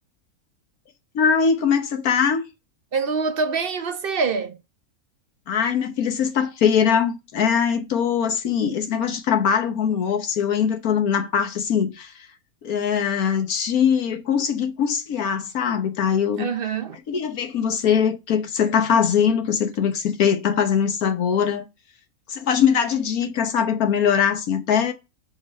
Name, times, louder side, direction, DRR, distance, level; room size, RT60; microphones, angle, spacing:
voice 1, 1.1-2.4 5.5-12.1 12.6-16.5 17.1-21.6 22.3-24.9, left 7 dB, 75° left, 1.5 m, -21 dB
voice 2, 2.9-4.6 16.4-17.0, right 5 dB, 50° right, 0.7 m, -25 dB
6.2 x 4.0 x 5.2 m
omnidirectional pair, 1.5 m